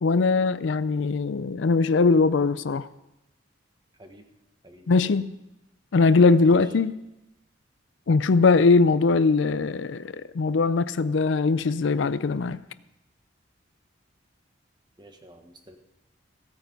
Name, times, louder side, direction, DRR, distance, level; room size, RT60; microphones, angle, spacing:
voice 1, 0.0-2.9 4.9-5.3 5.9-6.9 8.1-12.6, left 4 dB, 70° left, 15 dB, 0.5 m, -21 dB
voice 2, 3.9-4.3 4.6-5.2 6.4-6.7 15.0-15.8, equal, 25° right, 5 dB, 1.3 m, -49 dB
16.0 x 9.0 x 5.3 m, 0.95 s
head